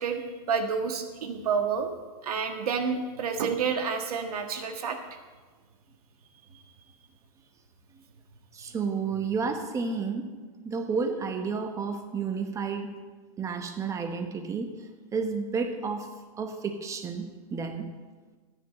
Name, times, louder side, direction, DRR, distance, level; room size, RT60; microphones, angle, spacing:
voice 1, 0.0-1.9 2.2-5.0, right 6 dB, 75° right, 5 dB, 1.7 m, -29 dB
voice 2, 8.5-10.3 10.6-12.9 13.4-14.7 15.1-16.1 16.4-17.9, right 5 dB, 15° right, 6 dB, 1.1 m, -31 dB
13.5 x 10.0 x 4.3 m, 1.4 s
hypercardioid pair, 140°, 19 cm